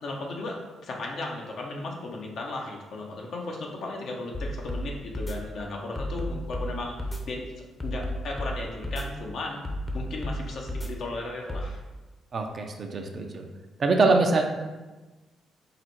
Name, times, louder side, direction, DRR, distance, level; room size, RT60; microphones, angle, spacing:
voice 1, 0.0-7.0 7.3-7.5 7.8-9.6 9.9-11.8, left 2 dB, 65° left, 0 dB, 0.8 m, -35 dB
sound 1, 4.3-4.8 5.1-5.4 6.0-6.7 7.0-7.2 7.8-8.5 8.8-9.1 9.6-10.4 10.7-10.9 11.5-11.7, left 1 dB, 20° left, 0.7 m, -32 dB
voice 2, 12.3-13.5 13.8-14.4, right 3 dB, 50° right, 3 dB, 0.6 m, -23 dB
4.9 x 2.0 x 4.4 m, 1.2 s
supercardioid pair, 55°, 0 cm